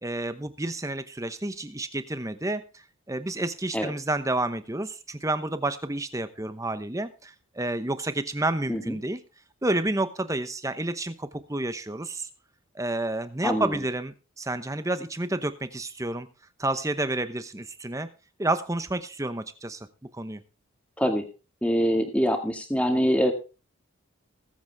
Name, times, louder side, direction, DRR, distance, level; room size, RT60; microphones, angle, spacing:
voice 1, 0.0-9.2 9.6-12.3 12.7-16.3 16.6-18.1 18.4-19.9 20.1-20.4, right 2 dB, 15° right, 11 dB, 0.8 m, -30 dB
voice 2, 13.4-13.8 21.0-21.3 21.6-23.3, equal, 5° left, 4 dB, 1.9 m, -24 dB
20.5 x 8.0 x 3.5 m, 0.31 s
head